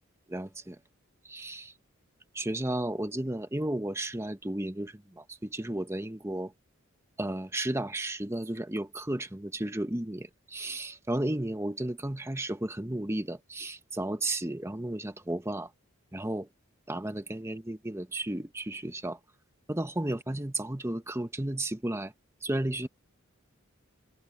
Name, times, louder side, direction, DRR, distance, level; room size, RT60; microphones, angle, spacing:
voice 1, 0.3-0.8 1.2-1.7 2.3-6.5 7.2-15.7 16.1-16.5 16.9-19.2 19.7-22.1 22.4-22.9, right 1 dB, 15° right, 1.0 m, -33 dB
head